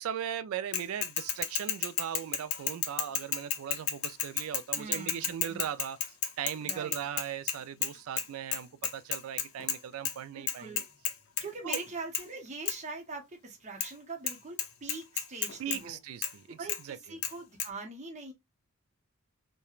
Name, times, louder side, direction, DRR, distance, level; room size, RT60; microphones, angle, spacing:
voice 1, 0.0-6.0 6.4-10.8 11.6-11.8 15.6-16.6 16.8-17.0, right 9 dB, 70° right, 0.3 m, -38 dB
Bicycle / Mechanisms, 0.7-7.9 8.2-8.3 8.5-9.8 10.0-10.1 10.5-11.4 11.7-11.9 12.1-12.2 12.7-12.8 13.8-13.9 14.3-14.4 14.6-15.8 16.2-16.3 16.7-16.8 17.2-17.3 17.6-17.7, left 8 dB, 70° left, 0.5 m, -31 dB
voice 2, 4.8-5.6 6.6-7.1 10.3-10.8 11.4-16.0 16.5-18.3, right 3 dB, 35° right, 0.7 m, -43 dB
3.0 x 2.2 x 2.3 m
head